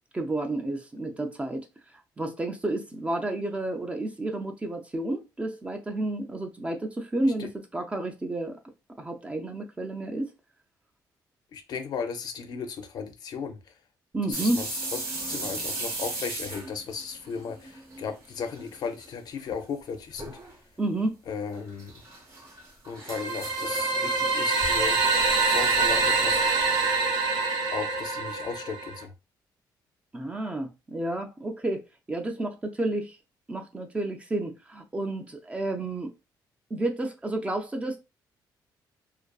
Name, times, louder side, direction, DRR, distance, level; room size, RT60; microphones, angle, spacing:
voice 1, 0.1-1.7 2.2-8.6 9.0-10.3 14.1-14.6 20.8-21.2 30.1-33.2 33.5-36.1 36.7-38.0, right 2 dB, 15° right, 0.3 m, -31 dB
voice 2, 11.5-13.6 14.3-14.7 15.2-20.4 21.3-21.9 22.9-25.2 25.4-26.4 26.7-26.8 27.7-29.1, left 6 dB, 60° left, 0.5 m, -35 dB
sound 1, 14.3-18.1 18.4-19.1 19.4-19.5 20.2-20.5 21.5-27.0, right 2 dB, 40° right, 0.9 m, -38 dB
sound 2, 23.1-29.0, right 4 dB, 70° right, 0.6 m, -25 dB
2.4 x 2.3 x 2.2 m
cardioid pair, 115°, 8 cm